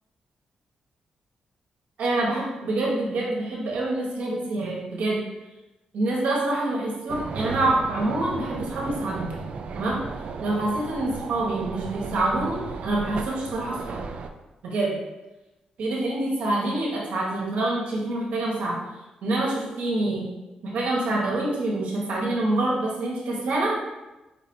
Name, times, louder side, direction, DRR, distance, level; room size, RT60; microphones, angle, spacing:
voice 1, 2.0-5.2 5.9-9.3 9.7-10.0 10.4-12.6 12.8-14.0 14.6-15.0 15.8-18.8 19.2-20.2 20.6-23.7, right 2 dB, 80° right, -3 dB, 1.3 m, -26 dB
sound 1, 7.1-14.3, right 5 dB, 55° right, 0.3 m, -35 dB
5.0 x 3.3 x 2.8 m, 1.0 s
cardioid pair, 125°, 2 cm